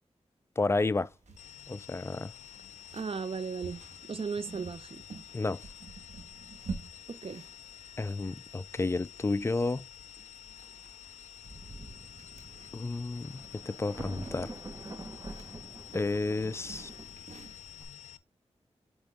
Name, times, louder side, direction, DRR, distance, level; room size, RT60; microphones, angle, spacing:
voice 1, 0.6-1.1 1.7-2.3 5.3-5.6 8.0-9.8 12.7-14.5 15.9-16.9, left 3 dB, 25° left, 0.3 m, -31 dB
sound 1, 0.7-17.8, right 4 dB, 85° right, 1.4 m, -50 dB
sound 2, 1.4-18.2, left 10 dB, 90° left, 0.4 m, -50 dB
voice 2, 2.9-5.0 7.1-7.4, right 5 dB, 55° right, 0.6 m, -36 dB
Thunder, 11.0-11.1 11.4-17.2, right 2 dB, 30° right, 1.1 m, -46 dB
8.2 x 3.5 x 3.5 m
cardioid pair, 50°, 12 cm